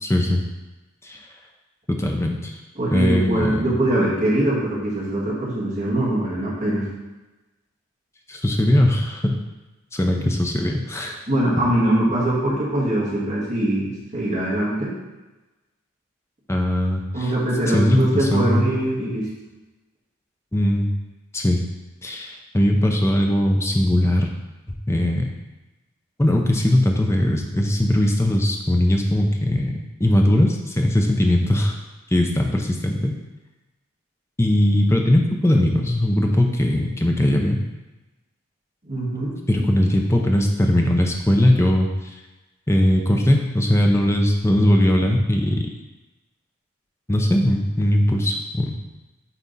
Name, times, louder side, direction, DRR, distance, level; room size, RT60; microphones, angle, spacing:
voice 1, 0.0-0.4 1.0-1.2 1.9-2.6 2.9-3.8 8.3-9.4 9.9-11.2 16.5-17.3 17.7-18.6 20.5-20.9 21.3-21.6 22.0-24.3 24.9-25.3 26.2-31.7 32.1-33.1 34.4-37.6 39.5-41.9 42.7-45.6 47.1-48.7, left 1 dB, 15° left, 2 dB, 0.6 m, -19 dB
voice 2, 2.8-6.9 10.2-10.3 11.3-14.9 17.1-19.3 38.8-39.3, right 1 dB, 35° right, -6 dB, 1.8 m, -22 dB
8.4 x 3.4 x 4.1 m, 1.1 s
head